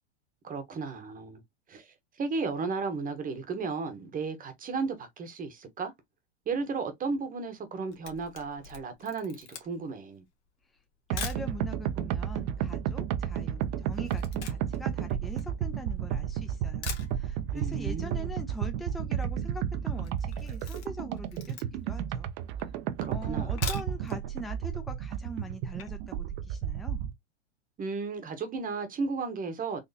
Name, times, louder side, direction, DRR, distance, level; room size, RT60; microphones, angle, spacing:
voice 1, 0.4-1.4 1.7-5.9 6.5-10.2 17.5-18.3 23.0-23.6 27.8-29.8, right 4 dB, 25° right, 1.0 m, -34 dB
Camera, 7.6-11.5 12.2-12.3 12.5-16.1 16.5-16.6 16.8-17.7 17.9-18.0 18.3-18.4 18.6-19.1 19.4-19.6 20.0-22.0 22.5-22.6 23.4-24.2 24.5-24.6 25.0-25.1, left 7 dB, 80° left, 1.3 m, -43 dB
voice 2, 11.1-22.3 23.1-27.0, equal, ahead, 0.6 m, -43 dB
sound 1, 11.1-27.1, right 9 dB, 45° right, 0.6 m, -32 dB
sound 2, 19.8-20.4 22.3-22.7 23.2-23.9 24.6-25.0 25.8-25.9, left 9 dB, 60° left, 1.0 m, -48 dB
4.0 x 2.8 x 2.7 m
hypercardioid pair, 105°, 34 cm